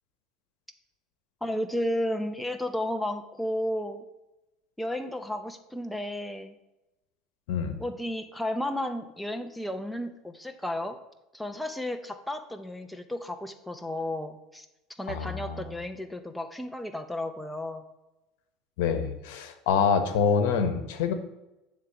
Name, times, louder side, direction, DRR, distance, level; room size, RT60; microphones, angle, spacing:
voice 1, 1.4-4.0 4.8-6.6 7.8-11.0 11.3-14.7 15.0-17.8, left 1 dB, 5° left, 7 dB, 0.6 m, -33 dB
voice 2, 7.5-7.8 15.1-15.7 18.8-21.1, left 6 dB, 80° left, 9 dB, 1.1 m, -26 dB
9.4 x 3.6 x 6.8 m, 0.96 s
supercardioid pair, 130°, 0 cm